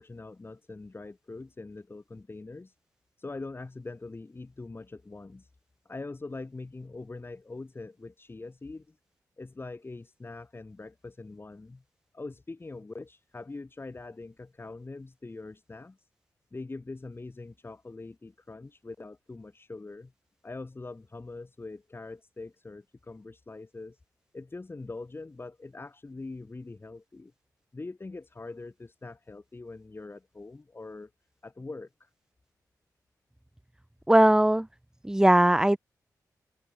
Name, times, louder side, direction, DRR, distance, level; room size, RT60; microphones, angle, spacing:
voice 1, 0.0-2.7 3.2-5.5 5.8-8.9 9.4-11.8 12.1-16.0 16.5-20.1 20.4-24.0 24.3-27.3 27.7-31.1 31.4-32.1, left 3 dB, 35° left, 7.9 m, -43 dB
voice 2, 34.1-34.7 35.0-35.8, right 1 dB, 10° right, 0.9 m, -19 dB
open air
cardioid pair, 65°, 7 cm